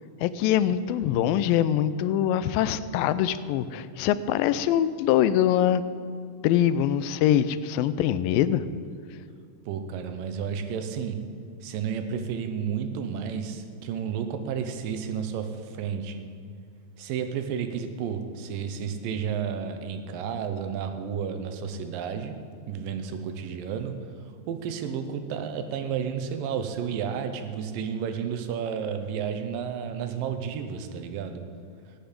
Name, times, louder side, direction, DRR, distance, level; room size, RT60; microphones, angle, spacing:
voice 1, 0.2-5.8 6.4-8.6, left 11 dB, 85° left, 14 dB, 2.3 m, -23 dB
voice 2, 9.7-11.2 11.6-16.3 17.0-22.4 22.7-24.0 24.5-31.5, right 7 dB, 80° right, 8 dB, 2.5 m, -32 dB
15.5 x 10.0 x 5.2 m, 2.3 s
omnidirectional pair, 4.1 m